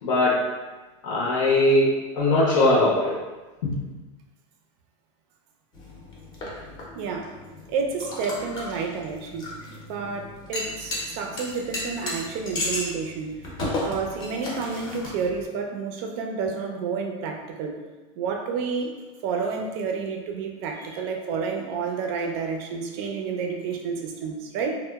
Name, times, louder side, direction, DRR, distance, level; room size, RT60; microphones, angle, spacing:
voice 1, 0.0-0.4 1.0-3.1 3.6-3.7, left 2 dB, 75° left, -7 dB, 0.6 m, -20 dB
sound 1, 5.7-15.4, left 1 dB, 25° left, 0.6 m, -35 dB
voice 2, 6.9-7.3 7.7-9.5 9.9-13.4 13.8-17.8 18.2-18.9 19.2-24.8, right 5 dB, 50° right, 3 dB, 0.4 m, -30 dB
2.8 x 2.0 x 2.2 m, 1.2 s
supercardioid pair, 150°, 17 cm